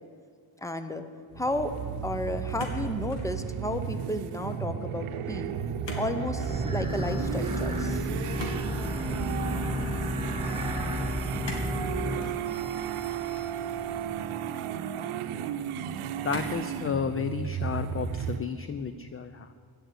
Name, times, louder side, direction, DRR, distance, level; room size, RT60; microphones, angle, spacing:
voice 1, 0.6-1.0 1.4-1.7 2.0-5.5 6.0-8.1, left 1 dB, 5° left, 9 dB, 0.8 m, -32 dB
sound 1, 1.3-18.4, right 9 dB, 85° right, 0.8 m, -34 dB
sound 2, 2.6-3.3 3.7-4.1 5.8-6.1 6.4-6.6 8.4-9.2 11.4-11.8 12.2-12.4 13.3-14.1 14.8-14.9 16.3-16.7 17.3-17.8 18.1-18.5, left 1 dB, 60° left, 2.6 m, -41 dB
sound 3, 6.4-14.1, equal, 10° right, 4.3 m, -32 dB
voice 2, 16.2-19.5, left 6 dB, 30° left, 11 dB, 0.5 m, -32 dB
16.0 x 6.4 x 9.8 m, 2.2 s
cardioid pair, 115°, 49 cm